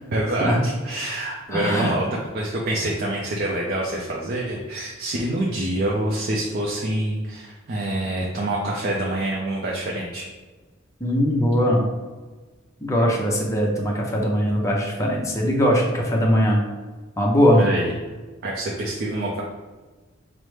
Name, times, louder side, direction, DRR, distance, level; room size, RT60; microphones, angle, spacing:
voice 1, 0.1-2.1 2.3-10.3 17.6-17.9 18.4-19.4, right 1 dB, 50° right, -2 dB, 0.5 m, -26 dB
voice 2, 1.5-1.9 11.0-11.8 12.8-16.6 17.2-17.6, equal, 15° left, -2 dB, 0.6 m, -20 dB
5.6 x 2.0 x 3.2 m, 1.3 s
head